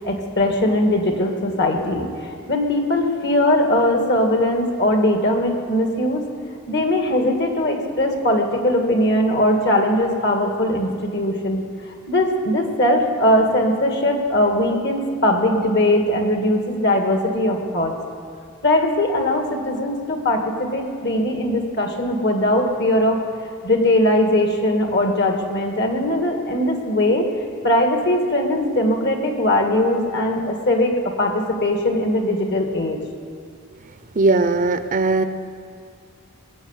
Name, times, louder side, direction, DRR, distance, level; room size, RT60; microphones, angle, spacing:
voice 1, 0.0-6.3 6.7-17.9 18.6-23.2 23.6-27.3 27.6-33.0, left 1 dB, 55° left, 3 dB, 1.9 m, -20 dB
voice 2, 34.1-35.2, right 3 dB, 40° right, 10 dB, 0.6 m, -18 dB
20.5 x 8.1 x 8.2 m, 2.2 s
head